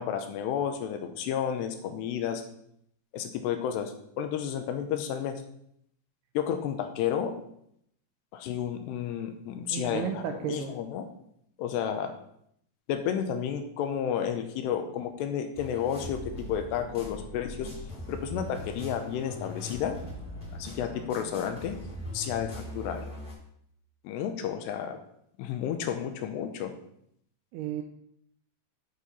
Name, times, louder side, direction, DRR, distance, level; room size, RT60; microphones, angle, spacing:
voice 1, 0.0-2.4 3.1-5.4 6.3-7.3 8.3-11.1 11.6-12.1 12.9-17.7 18.1-20.0 20.5-21.8 22.1-23.1 24.0-25.0 25.4-26.7, left 8 dB, 85° left, 6 dB, 2.8 m, -31 dB
voice 2, 9.7-10.7 27.5-27.8, right 10 dB, 85° right, 5 dB, 2.3 m, -33 dB
sound 1, 15.5-23.3, left 1 dB, 25° left, 1.1 m, -40 dB
10.0 x 4.2 x 5.3 m, 0.72 s
omnidirectional pair, 5.1 m